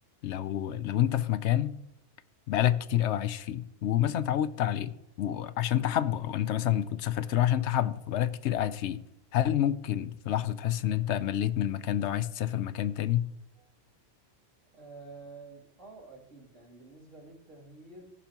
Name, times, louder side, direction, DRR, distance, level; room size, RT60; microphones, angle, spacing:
voice 1, 0.2-1.8 2.5-9.0 9.3-13.3, left 11 dB, 70° left, 0.8 m, -28 dB
voice 2, 14.7-18.1, right 3 dB, 85° right, 3.3 m, -49 dB
16.0 x 7.1 x 2.9 m
omnidirectional pair, 1.2 m